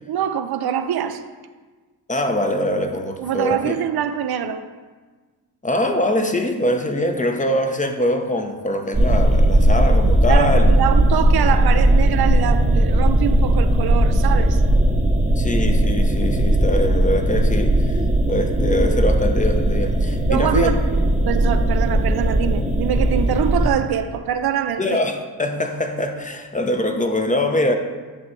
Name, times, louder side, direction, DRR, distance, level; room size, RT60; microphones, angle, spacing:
voice 1, 0.1-1.2 3.2-4.7 10.3-14.6 20.3-25.0, right 9 dB, 70° right, 0.5 m, -24 dB
voice 2, 2.1-3.7 5.6-10.7 15.4-18.0 18.3-20.7 24.8-27.7, left 1 dB, 20° left, 0.7 m, -23 dB
sound 1, 8.9-23.7, right 1 dB, 20° right, 0.7 m, -17 dB
9.0 x 3.1 x 4.5 m
cardioid pair, 60°, 39 cm